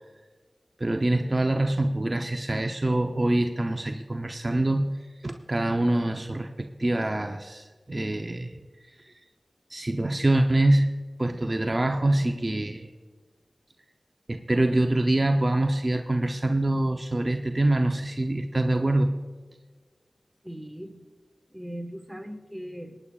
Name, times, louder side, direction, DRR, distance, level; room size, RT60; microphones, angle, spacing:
voice 1, 0.8-4.9 5.2-8.6 9.7-12.9 14.3-19.1, right 1 dB, 40° right, 4 dB, 0.7 m, -25 dB
voice 2, 20.4-21.1 21.5-23.0, equal, 5° right, 5 dB, 1.3 m, -39 dB
23.0 x 9.9 x 2.4 m, 1.4 s
cardioid pair, 45°, 0 cm